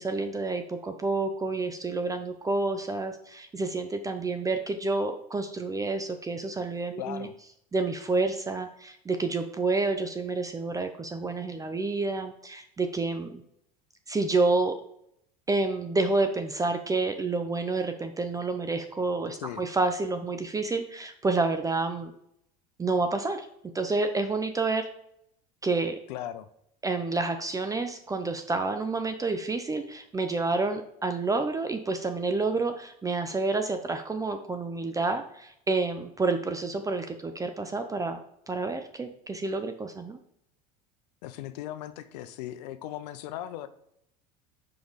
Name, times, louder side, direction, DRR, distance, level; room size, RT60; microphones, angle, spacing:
voice 1, 0.0-7.3 7.7-13.3 14.1-14.8 15.5-22.1 22.8-23.5 23.7-24.9 25.6-26.0 26.8-38.2 38.5-40.2, right 3 dB, 15° right, 7 dB, 0.5 m, -29 dB
voice 2, 7.0-7.3 19.4-19.6 26.1-26.5 41.2-43.7, left 12 dB, 75° left, 12 dB, 0.5 m, -38 dB
5.1 x 4.8 x 3.9 m, 0.73 s
supercardioid pair, 95°, 21 cm